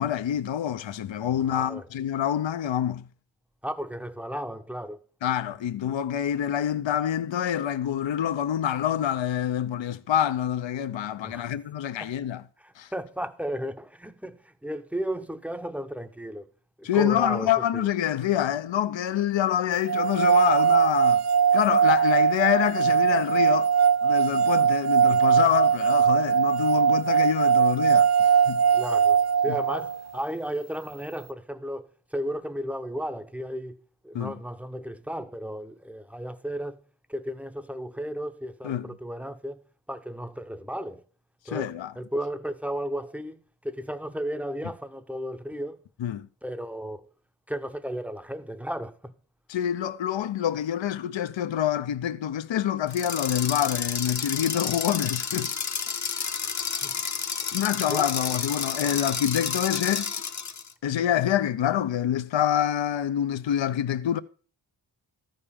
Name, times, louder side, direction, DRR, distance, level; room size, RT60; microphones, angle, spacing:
voice 1, 0.0-3.0 5.2-12.4 12.8-12.9 16.8-21.2 21.5-23.7 24.0-28.6 34.1-34.3 38.6-38.9 41.5-41.9 46.0-46.3 49.5-55.5 57.5-60.1 60.8-64.2, left 10 dB, 70° left, 0.7 m, -26 dB
voice 2, 1.2-1.8 3.6-5.0 11.2-11.5 12.0-12.1 12.6-16.5 16.8-17.9 28.7-33.8 34.0-36.8 37.1-39.6 39.9-41.0 41.5-45.8 46.4-47.1 47.5-49.1 56.7-57.0 57.9-58.1, equal, 5° right, 0.7 m, -34 dB
sound 1, 19.9-30.0, right 7 dB, 35° right, 0.4 m, -21 dB
sound 2, 52.9-60.7, left 6 dB, 40° left, 0.8 m, -31 dB
13.5 x 5.3 x 6.9 m
wide cardioid pair, 100°, 47 cm